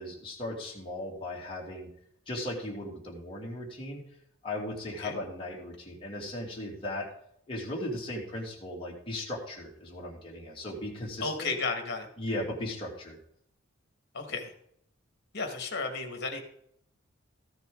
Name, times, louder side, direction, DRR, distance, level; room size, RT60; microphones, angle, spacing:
voice 1, 0.0-1.9 2.3-4.0 4.4-7.1 7.5-11.5 12.2-13.2, left 1 dB, 25° left, -3 dB, 2.5 m, -37 dB
voice 2, 11.2-12.1 14.1-14.5 15.3-16.4, left 4 dB, 55° left, 5 dB, 1.9 m, -33 dB
14.0 x 9.7 x 3.9 m, 0.70 s
head